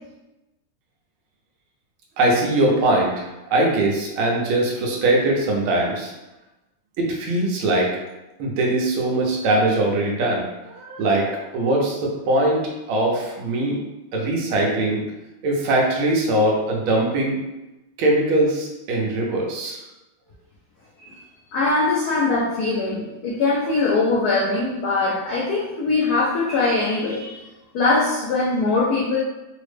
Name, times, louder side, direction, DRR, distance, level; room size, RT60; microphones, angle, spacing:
voice 1, 2.2-6.1 7.0-7.9 8.4-12.6 12.9-13.8 14.1-15.0 15.4-17.4 18.0-19.8, right 1 dB, 80° right, -1 dB, 1.5 m, -21 dB
voice 2, 21.5-27.4 27.7-29.2, left 3 dB, 85° left, -5 dB, 0.8 m, -21 dB
3.9 x 2.0 x 3.2 m, 1.0 s
omnidirectional pair, 2.3 m